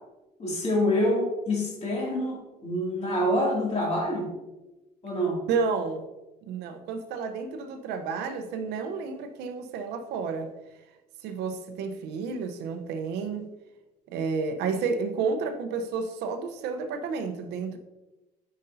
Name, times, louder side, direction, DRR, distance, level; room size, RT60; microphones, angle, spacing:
voice 1, 0.4-4.3 5.0-5.4, left 1 dB, 40° left, -2 dB, 2.5 m, -26 dB
voice 2, 5.5-6.1 6.5-10.5 11.2-13.5 14.1-17.8, right 5 dB, 85° right, 7 dB, 0.8 m, -31 dB
9.3 x 5.3 x 2.7 m, 1.1 s
cardioid pair, 110°, 17 cm